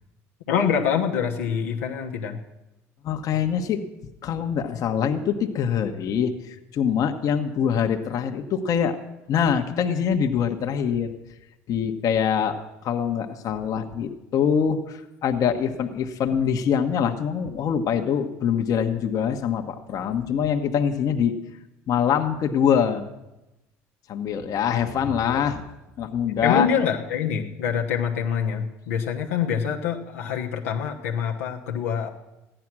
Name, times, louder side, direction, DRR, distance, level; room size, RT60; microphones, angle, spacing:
voice 1, 0.5-2.4 24.7-25.4 26.4-32.1, left 7 dB, 90° left, 1 dB, 1.1 m, -26 dB
voice 2, 3.0-3.8 4.2-9.0 9.3-11.1 11.7-21.3 21.9-23.1 24.1-25.6 26.0-26.7, left 8 dB, 55° left, 5 dB, 1.2 m, -24 dB
14.5 x 10.0 x 6.1 m, 0.96 s
hypercardioid pair, 70°, 7 cm